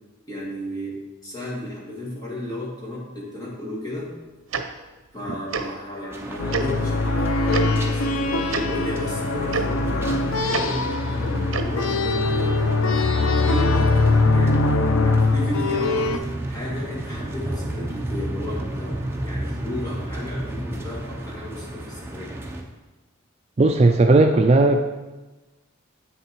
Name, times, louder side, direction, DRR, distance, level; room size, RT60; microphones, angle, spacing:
voice 1, 0.3-4.1 5.1-13.1 13.4-22.3, left 1 dB, 20° left, -5 dB, 2.5 m, -33 dB
Tick-tock, 4.5-4.6 5.5-5.6 6.5-6.6 7.5-7.6 8.5-8.6 9.5-9.6 10.5-10.6 11.5-11.7, right 5 dB, 75° right, 0.8 m, -26 dB
sound 1, 6.1-22.6, right 1 dB, 10° right, 0.8 m, -33 dB
sound 2, 6.4-16.2, left 3 dB, 80° left, 0.7 m, -22 dB
voice 2, 23.6-24.8, right 2 dB, 30° right, 5 dB, 0.3 m, -16 dB
8.2 x 6.8 x 4.5 m, 1.2 s
head